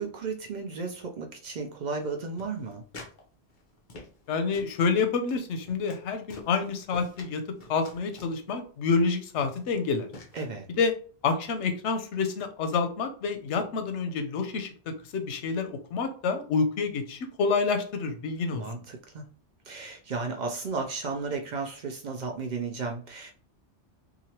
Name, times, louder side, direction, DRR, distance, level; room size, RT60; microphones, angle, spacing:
voice 1, 0.0-2.8 10.3-10.7 18.5-19.2 19.7-23.3, right 4 dB, 60° right, 0.5 m, -34 dB
sound 1, 2.4-3.2 3.5-4.3 4.5-4.8 5.2-5.4 5.6-6.0 6.3-7.3 7.6-8.3 9.0-9.1 9.4-9.7 10.1-10.4, left 2 dB, 50° left, 0.8 m, -47 dB
voice 2, 4.3-7.4 7.7-10.1 10.8-10.9 11.2-18.6, left 4 dB, 90° left, 0.9 m, -28 dB
2.9 x 2.4 x 2.8 m
omnidirectional pair, 1.2 m